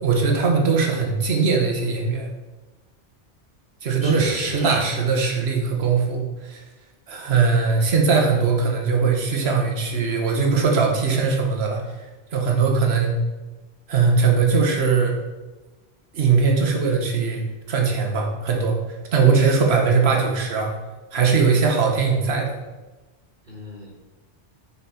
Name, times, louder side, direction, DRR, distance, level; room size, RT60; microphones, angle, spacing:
voice 1, 0.0-2.3 3.8-6.6 7.1-11.8 12.3-13.1 13.9-15.2 16.1-20.7 21.1-22.6, right 5 dB, 60° right, 1 dB, 1.2 m, -20 dB
voice 2, 4.0-4.8 23.4-23.9, equal, 45° right, -7 dB, 1.6 m, -33 dB
5.5 x 4.3 x 4.2 m, 1.2 s
omnidirectional pair, 1.2 m